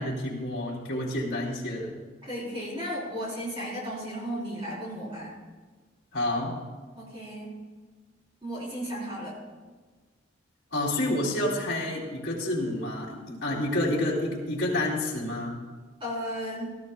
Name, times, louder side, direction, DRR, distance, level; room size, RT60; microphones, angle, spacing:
voice 1, 0.0-1.9 6.1-6.5 10.7-15.5, left 1 dB, 55° left, -4 dB, 3.5 m, -29 dB
voice 2, 2.2-5.4 7.0-7.5 8.4-9.4 16.0-16.8, equal, 25° right, -5 dB, 4.0 m, -34 dB
18.0 x 13.0 x 2.3 m, 1.4 s
head